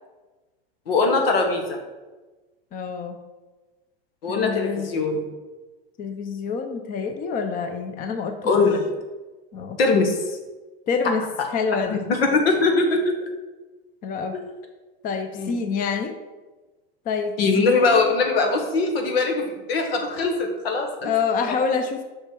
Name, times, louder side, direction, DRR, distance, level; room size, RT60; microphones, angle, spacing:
voice 1, 0.9-1.8 4.2-5.3 8.4-8.8 9.8-10.2 11.9-13.3 15.3-15.5 17.4-21.1, left 3 dB, 85° left, 3 dB, 1.6 m, -21 dB
voice 2, 2.7-3.2 4.3-4.9 6.0-8.6 9.5-10.0 10.9-11.2 11.5-12.0 14.0-14.4 15.0-16.2 17.0-18.1 21.0-22.0, left 5 dB, 30° left, 6 dB, 0.7 m, -27 dB
6.6 x 5.9 x 4.6 m, 1.2 s
supercardioid pair, 125°, 29 cm